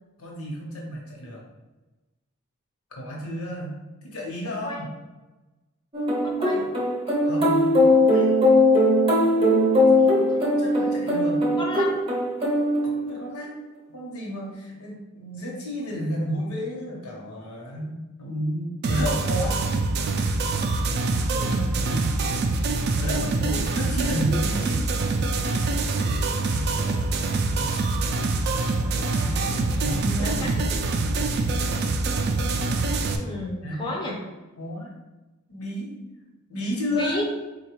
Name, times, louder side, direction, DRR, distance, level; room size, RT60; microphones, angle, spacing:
voice 1, 0.2-1.4 2.9-3.8 4.0-4.9 6.5-6.6 7.2-8.5 9.7-11.6 12.8-19.6 21.9-22.2 22.9-24.9 27.4-27.8 29.1-30.6 33.6-33.9 34.6-34.9 35.5-37.2, equal, 85° left, -3 dB, 0.9 m, -32 dB
sound 1, 5.9-13.4, left 1 dB, 25° right, 0.7 m, -20 dB
voice 2, 6.2-6.6 9.8-10.3 10.6-10.9 11.6-12.0 21.1-21.7 23.2-23.6 26.8-27.1 28.8-29.8 30.2-30.8 33.2-34.2 36.9-37.2, left 1 dB, 20° left, -1 dB, 0.4 m, -34 dB
sound 2, 18.8-33.2, right 3 dB, 50° right, 0.3 m, -25 dB
4.1 x 2.3 x 3.0 m, 1.1 s
head